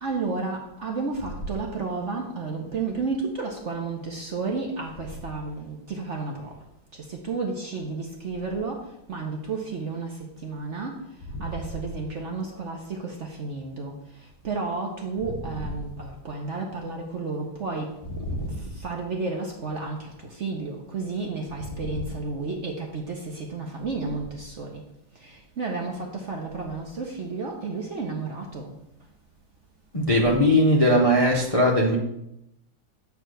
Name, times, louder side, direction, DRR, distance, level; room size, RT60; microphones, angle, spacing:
voice 1, 0.0-6.5 7.1-8.8 9.1-11.0 11.4-13.9 14.4-18.0 18.3-18.4 18.7-24.8 25.2-28.7, right 4 dB, 50° right, 0.9 m, -32 dB
voice 2, 18.1-18.6 21.6-21.9 29.9-31.9, equal, 35° left, 0.5 m, -21 dB
8.6 x 3.4 x 6.3 m
omnidirectional pair, 2.1 m